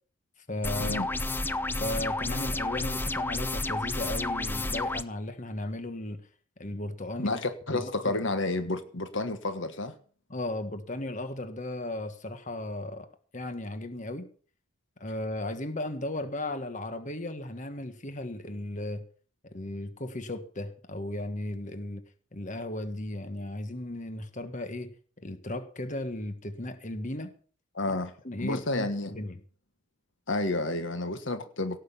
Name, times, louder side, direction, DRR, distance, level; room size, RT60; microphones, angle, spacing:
voice 1, 0.5-1.1 1.8-6.2 6.6-7.4 7.7-8.2 10.3-13.1 13.3-14.3 15.0-19.0 19.5-22.0 22.3-24.9 25.2-27.3 28.2-29.3, left 1 dB, 35° left, 1.5 m, -35 dB
sound 1, 0.6-5.0, left 2 dB, 10° left, 0.5 m, -31 dB
voice 2, 7.2-9.9 27.7-28.1 28.4-29.2 30.3-31.8, left 2 dB, 65° left, 1.4 m, -30 dB
17.5 x 6.4 x 8.4 m
head